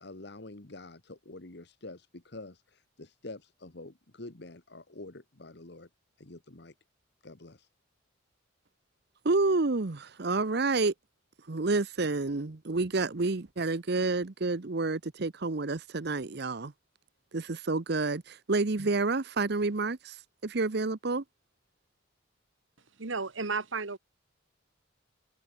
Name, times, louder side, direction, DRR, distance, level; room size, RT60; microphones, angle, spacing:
voice 1, 0.0-5.9 6.2-6.7 7.2-7.7, left 2 dB, 55° left, 1.5 m, -47 dB
voice 2, 9.2-10.9 11.5-16.7 17.3-21.2, right 3 dB, 55° right, 0.8 m, -29 dB
voice 3, 23.0-24.0, right 4 dB, 75° right, 1.6 m, -33 dB
head